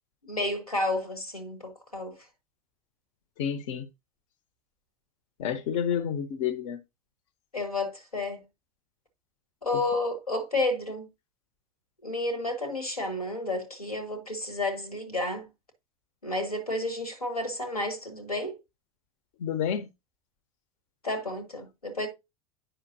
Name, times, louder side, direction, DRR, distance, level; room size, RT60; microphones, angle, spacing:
voice 1, 0.3-2.2 7.5-8.4 9.6-11.1 12.0-15.5 16.2-18.6 21.0-22.1, left 2 dB, 90° left, 1.9 m, -31 dB
voice 2, 3.4-3.9 5.4-6.8 19.4-19.9, left 8 dB, 55° left, 0.9 m, -29 dB
9.0 x 5.7 x 2.7 m
figure-of-eight pair, 80°, 18 cm